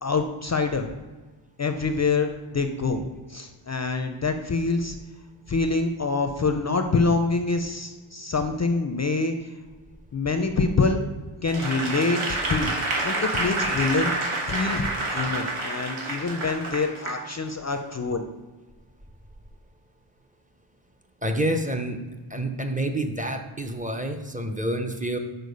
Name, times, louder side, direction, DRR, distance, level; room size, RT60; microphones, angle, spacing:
voice 1, 0.0-0.9 1.6-5.0 5.5-9.3 10.1-11.0 11.4-12.7 13.0-14.1 14.5-18.2, left 3 dB, 35° left, 6 dB, 0.4 m, -25 dB
Applause / Crowd, 11.5-17.2 17.7-17.9, right 2 dB, 75° right, 1.6 m, -28 dB
voice 2, 21.2-22.0 22.3-25.2, right 1 dB, 15° right, 4 dB, 0.5 m, -28 dB
6.6 x 4.4 x 5.2 m, 1.3 s
wide cardioid pair, 120°, 50 cm